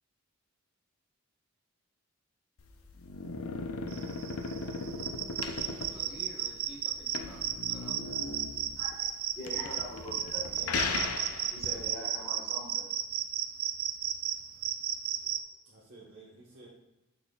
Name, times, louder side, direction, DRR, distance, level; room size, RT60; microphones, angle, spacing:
sound 1, 2.6-11.9, left 4 dB, 85° left, 0.5 m, -38 dB
sound 2, 3.9-15.4, right 11 dB, 75° right, 0.4 m, -34 dB
voice 1, 5.9-8.0 15.3-15.7, right 1 dB, 5° right, -4 dB, 1.2 m, -51 dB
voice 2, 9.3-10.8 11.5-12.9, equal, 10° left, -8 dB, 1.5 m, -42 dB
voice 3, 15.2-16.7, right 3 dB, 60° right, -7 dB, 1.2 m, -55 dB
6.5 x 6.0 x 2.4 m, 1.0 s
head